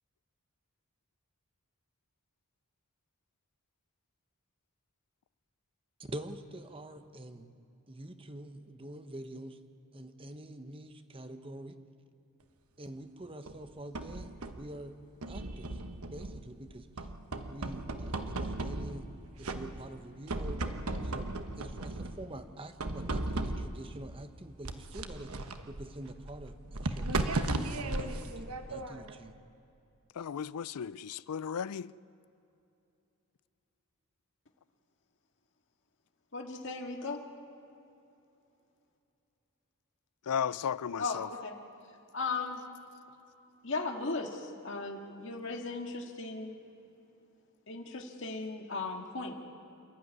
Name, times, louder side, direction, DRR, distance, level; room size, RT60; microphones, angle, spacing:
voice 1, 6.0-7.5 7.9-9.6 9.9-11.8 12.8-14.9 15.3-15.8 16.1-16.9 17.5-19.1 19.4-20.6 21.0-21.3 21.6-25.3 25.7-27.4 27.8-29.3, right 1 dB, 25° right, 1.0 m, -45 dB
sound 1, 13.5-14.7 15.2-16.6 17.0-19.1 19.4-20.0 20.3-22.2 22.8-23.9 24.6-29.1, right 2 dB, 75° right, 1.2 m, -36 dB
voice 2, 30.2-31.9 40.3-41.3, left 7 dB, 90° left, 0.4 m, -35 dB
voice 3, 36.3-37.2 41.0-41.6 42.1-42.6 43.6-46.5 47.7-49.3, left 3 dB, 55° left, 2.0 m, -37 dB
27.5 x 12.0 x 9.5 m
head